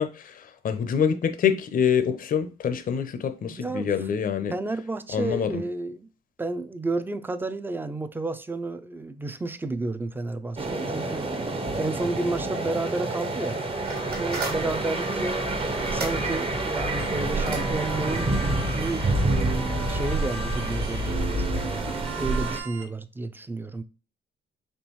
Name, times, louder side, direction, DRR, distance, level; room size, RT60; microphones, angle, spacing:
voice 1, 0.0-4.5 5.1-5.5, left 7 dB, 45° left, 0.6 m, -25 dB
voice 2, 3.5-4.1 4.5-6.1 6.4-11.3 11.8-13.6 14.2-23.8, right 2 dB, 10° right, 0.4 m, -31 dB
sound 1, 10.6-22.6, right 2 dB, 30° right, 0.8 m, -28 dB
sound 2, 13.8-19.7, right 3 dB, 50° right, 1.5 m, -39 dB
sound 3, 17.0-22.8, right 4 dB, 85° right, 1.5 m, -37 dB
4.4 x 3.1 x 3.0 m
cardioid pair, 90°, 20 cm